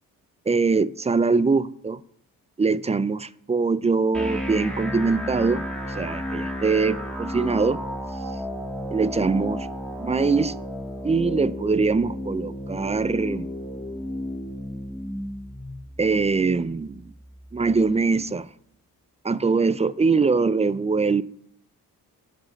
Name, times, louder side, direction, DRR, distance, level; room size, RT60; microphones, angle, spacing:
voice 1, 0.5-2.0 2.6-7.8 8.9-9.7 10.0-10.5 11.0-13.5 16.0-17.1 17.5-18.5 19.2-21.2, right 4 dB, 15° right, 0.4 m, -23 dB
sound 1, 4.1-18.1, equal, ahead, 2.4 m, -33 dB
7.9 x 6.3 x 7.4 m
supercardioid pair, 60°, 38 cm